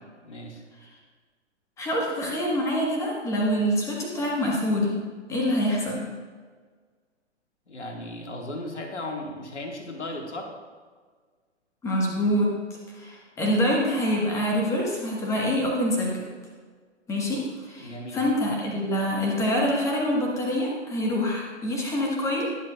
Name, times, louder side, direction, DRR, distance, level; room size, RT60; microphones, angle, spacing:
voice 1, 0.2-0.6 7.7-10.5 17.8-18.3, left 1 dB, 70° left, 2 dB, 1.8 m, -36 dB
voice 2, 1.8-5.0 5.3-6.1 11.8-16.2 17.1-22.5, equal, 10° left, -2 dB, 1.3 m, -26 dB
20.5 x 7.2 x 2.3 m, 1.5 s
figure-of-eight pair, 120°, 36 cm